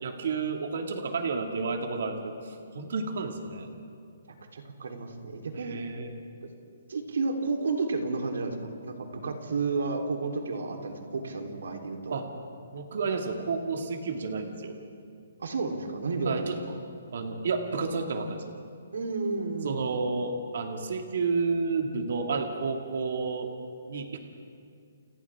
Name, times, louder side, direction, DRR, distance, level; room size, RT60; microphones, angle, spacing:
voice 1, 0.0-3.7 5.5-6.1 12.1-12.3 12.7-14.8 16.2-16.6 17.1-18.6 19.6-23.5 23.9-24.2, right 4 dB, 50° right, 3 dB, 2.1 m, -31 dB
voice 2, 4.5-5.8 6.4-6.5 6.9-12.2 15.4-16.5 18.9-19.8, right 3 dB, 80° right, 2 dB, 3.6 m, -31 dB
30.0 x 29.5 x 3.7 m, 2.3 s
hypercardioid pair, 180°, 0 cm